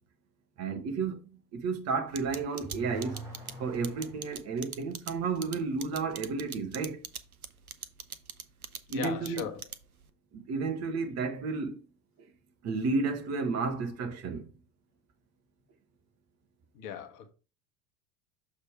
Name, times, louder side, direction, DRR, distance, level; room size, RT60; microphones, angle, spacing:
voice 1, 0.6-1.2 1.6-3.2 3.6-7.0 8.9-9.5 10.5-11.7 12.6-14.4, right 4 dB, 40° right, 1.3 m, -32 dB
Car / Accelerating revving vroom, 2.1-4.3, right 1 dB, 5° right, 4.0 m, -45 dB
sound 1, 2.2-10.1, right 7 dB, 90° right, 0.6 m, -41 dB
voice 2, 8.9-9.6 16.7-17.3, left 9 dB, 45° left, 1.2 m, -38 dB
6.5 x 3.6 x 4.9 m
figure-of-eight pair, 75°, 42 cm